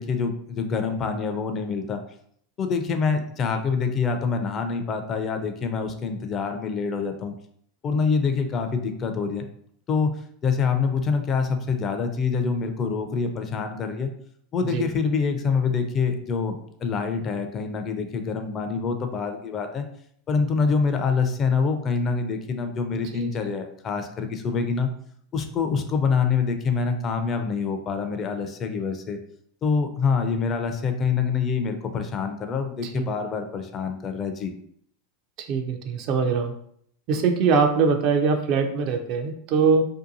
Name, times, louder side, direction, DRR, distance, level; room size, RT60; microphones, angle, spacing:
voice 1, 0.0-2.0 2.6-7.3 7.8-9.5 9.9-10.1 10.4-14.1 14.5-19.9 20.3-24.9 25.3-29.2 29.6-34.5, left 5 dB, 35° left, 6 dB, 0.4 m, -25 dB
voice 2, 35.5-36.5 37.1-39.9, right 5 dB, 50° right, 5 dB, 0.4 m, -22 dB
2.7 x 2.2 x 2.6 m, 0.65 s
hypercardioid pair, 85°, 0 cm